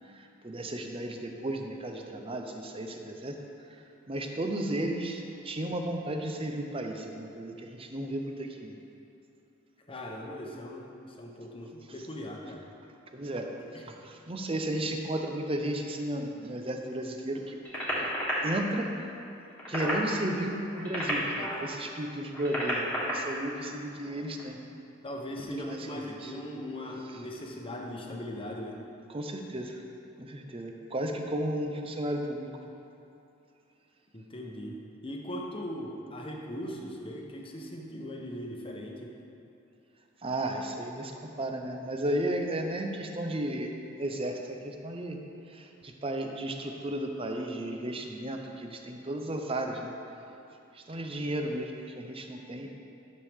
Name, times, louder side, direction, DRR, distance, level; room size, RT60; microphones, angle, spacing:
voice 1, 0.1-3.3 4.1-8.7 13.1-13.5 13.9-17.6 18.0-18.1 18.4-18.9 19.7-24.6 25.4-26.3 29.1-29.8 30.2-32.5 40.2-41.1 41.4-43.7 44.0-44.4 44.6-45.2 45.5-49.9 50.7-52.7, right 1 dB, 30° right, 3 dB, 0.7 m, -34 dB
voice 2, 9.9-12.6 13.5-13.9 25.0-28.8 34.1-34.8 35.0-39.1, equal, 30° left, 0 dB, 1.0 m, -39 dB
sound 1, 17.6-18.3 19.4-20.0 20.7-21.6 22.3-23.1 24.3-24.5, equal, 10° left, 1.8 m, -32 dB
12.0 x 6.5 x 3.6 m, 2.7 s
head